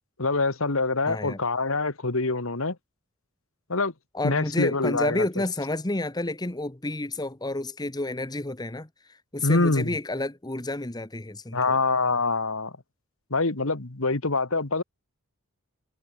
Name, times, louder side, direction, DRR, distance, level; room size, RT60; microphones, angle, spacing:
voice 1, 0.2-2.7 3.7-3.9 4.2-5.3 9.4-10.0 11.5-12.7 13.3-14.8, left 3 dB, 65° left, 1.7 m, -25 dB
voice 2, 1.1-1.4 4.1-11.6, left 2 dB, 20° left, 1.2 m, -30 dB
head